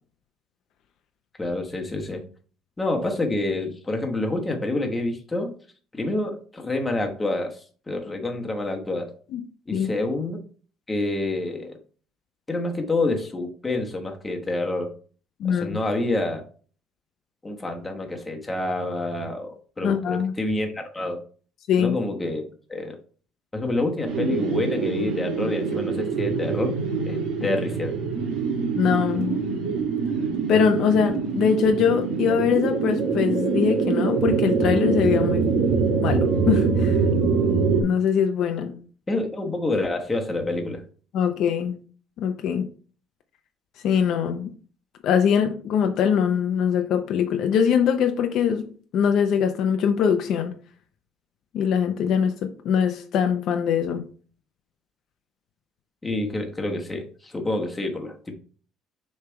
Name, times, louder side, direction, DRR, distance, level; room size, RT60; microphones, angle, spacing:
voice 1, 1.4-2.2 2.8-5.5 5.9-9.1 9.7-10.4 10.9-11.7 12.5-14.9 15.5-16.4 17.4-21.2 21.8-23.0 23.5-26.8 27.1-28.0 39.1-40.8 56.0-58.3, left 2 dB, 10° left, 1.1 m, -28 dB
voice 2, 15.4-15.8 19.8-20.3 21.7-22.0 28.8-29.4 30.5-35.5 36.0-37.0 37.8-38.8 41.1-41.8 42.2-42.7 43.8-44.5 45.0-50.5 51.5-54.0, left 7 dB, 55° left, 0.6 m, -22 dB
sound 1, 24.0-37.8, right 5 dB, 60° right, 2.3 m, -24 dB
6.7 x 3.3 x 4.7 m
cardioid pair, 145°, 0 cm